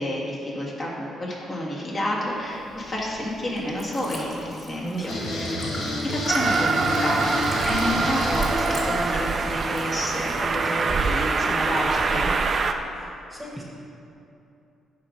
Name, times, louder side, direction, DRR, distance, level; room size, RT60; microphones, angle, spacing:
voice 1, 0.0-5.5 6.0-7.3 7.6-12.3, left 1 dB, 40° left, -4 dB, 1.8 m, -29 dB
Liquid, 2.3-10.9, equal, 25° left, 1.7 m, -42 dB
voice 2, 4.8-5.7 12.9-13.6, right 2 dB, 10° right, -3 dB, 1.3 m, -35 dB
sound 1, 5.1-10.0, left 1 dB, 75° left, 1.5 m, -30 dB
Train, 6.3-12.7, right 4 dB, 45° right, 0.5 m, -24 dB
10.5 x 3.7 x 5.1 m, 2.8 s
cardioid pair, 90°, 0 cm